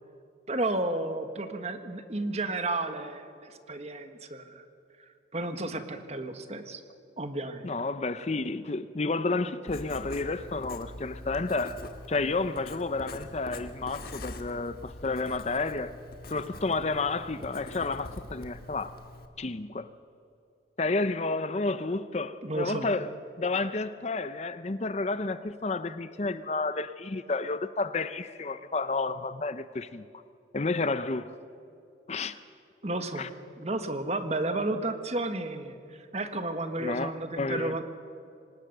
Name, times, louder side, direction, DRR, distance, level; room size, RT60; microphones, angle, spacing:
voice 1, 0.5-4.6 5.3-6.8 7.2-7.7 22.4-22.9 32.8-33.2 33.6-37.9, right 2 dB, 35° right, 1.5 m, -32 dB
voice 2, 7.6-11.8 12.1-15.9 16.3-18.9 19.4-19.9 20.8-23.1 23.4-30.1 30.5-31.4 32.1-32.4 33.2-33.3 36.8-37.8, left 3 dB, 35° left, 0.6 m, -31 dB
Writing, 9.7-19.3, left 1 dB, 55° left, 1.6 m, -44 dB
25.0 x 19.5 x 6.7 m
head